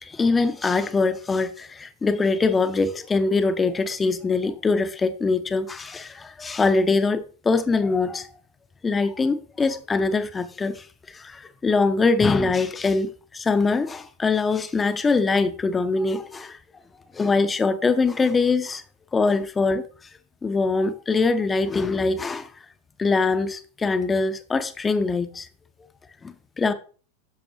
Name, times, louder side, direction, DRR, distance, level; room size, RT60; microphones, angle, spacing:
voice 1, 0.0-8.3 8.8-16.6 17.1-18.8 19.1-19.9 20.4-22.5 23.0-25.5 26.2-26.7, left 4 dB, 15° left, 0.8 m, -23 dB
10.5 x 6.9 x 3.0 m
figure-of-eight pair, 90°, 0 cm